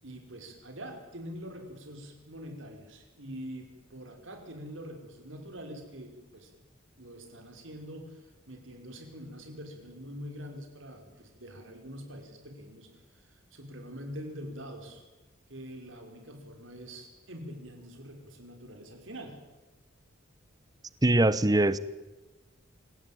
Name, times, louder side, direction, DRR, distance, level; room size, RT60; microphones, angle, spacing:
voice 1, 0.0-6.5 7.0-15.0 15.5-19.4, equal, 65° right, 4 dB, 5.5 m, -44 dB
voice 2, 21.0-21.8, right 1 dB, 20° right, 16 dB, 1.0 m, -22 dB
26.0 x 17.5 x 9.3 m, 1.1 s
head